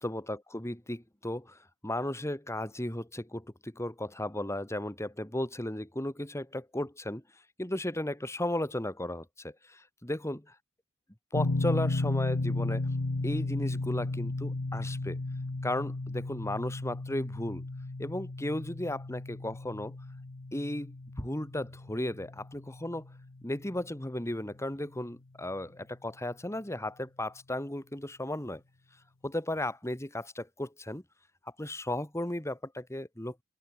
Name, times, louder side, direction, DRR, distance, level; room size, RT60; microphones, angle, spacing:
voice 1, 0.0-7.2 7.6-10.4 11.3-12.9 13.2-15.2 15.6-17.6 18.0-20.0 20.5-23.1 23.4-28.6 29.2-31.0 31.6-33.4, left 1 dB, 15° left, 2.2 m, -35 dB
sound 1, 11.3-24.2, left 2 dB, 60° left, 1.0 m, -34 dB
open air
head